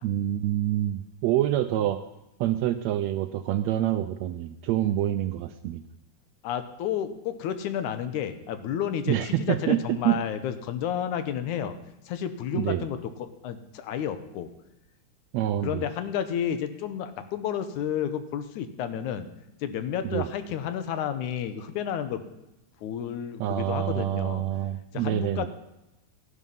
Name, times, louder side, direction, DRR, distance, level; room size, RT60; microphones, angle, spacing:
voice 1, 0.0-2.0 2.4-5.8 9.1-10.2 12.5-12.9 15.3-15.9 20.1-20.3 23.4-25.5, right 12 dB, 80° right, 10 dB, 1.6 m, -26 dB
voice 2, 6.4-11.8 12.1-14.5 15.6-19.3 19.6-22.2 22.8-24.4 24.9-25.5, left 9 dB, 80° left, 10 dB, 2.3 m, -31 dB
14.0 x 11.0 x 5.4 m, 0.92 s
omnidirectional pair, 3.5 m